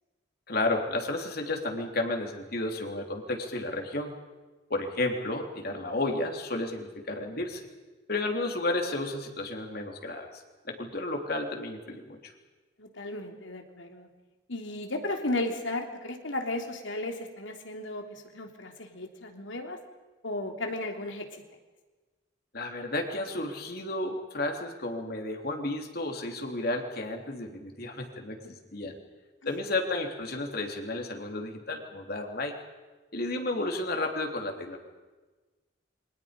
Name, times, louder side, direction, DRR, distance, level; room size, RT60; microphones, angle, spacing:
voice 1, 0.5-4.1 4.7-7.7 8.1-12.3 22.5-29.0 29.4-32.6 33.1-34.8, left 2 dB, 50° left, 3 dB, 3.4 m, -32 dB
voice 2, 12.8-14.1 14.5-19.8 20.2-21.4, left 2 dB, 75° left, 3 dB, 3.4 m, -35 dB
28.5 x 25.0 x 5.3 m, 1.3 s
head